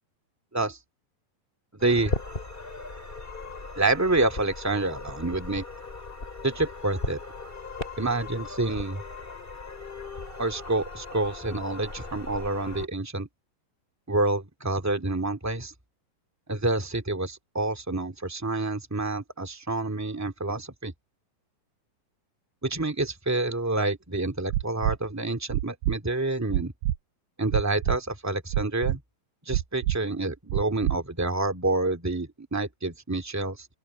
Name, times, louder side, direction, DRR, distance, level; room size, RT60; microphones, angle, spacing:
voice 1, 1.7-2.1 3.7-5.6 6.4-7.2 8.0-9.0 10.4-13.3 14.1-15.7 16.5-20.9 22.6-26.7 27.4-29.0 29.4-33.7, right 2 dB, 10° right, 1.2 m, -28 dB
sound 1, 1.8-12.9, left 3 dB, 15° left, 2.7 m, -37 dB
sound 2, 24.5-25.0 25.5-26.0 26.5-27.0 27.5-28.0 28.5-29.0 29.5-30.0 30.5-31.0 31.5-31.6, right 14 dB, 85° right, 2.0 m, -26 dB
open air
omnidirectional pair, 4.4 m